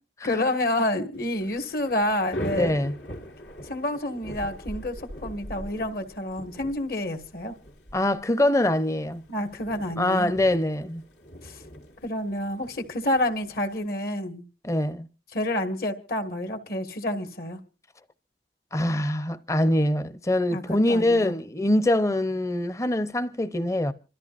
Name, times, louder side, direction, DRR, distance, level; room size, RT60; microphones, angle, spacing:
voice 1, 0.2-2.7 3.6-7.6 9.3-10.3 11.4-11.6 12.0-14.4 15.3-17.6 20.5-20.6 20.9-21.3, left 1 dB, 55° left, 1.7 m, -29 dB
Thunder / Rain, 1.2-13.9, equal, 85° left, 2.6 m, -41 dB
voice 2, 2.5-2.9 7.9-9.2 10.0-11.0 14.6-15.1 18.7-23.9, left 1 dB, 15° left, 0.7 m, -24 dB
27.0 x 13.5 x 2.5 m
head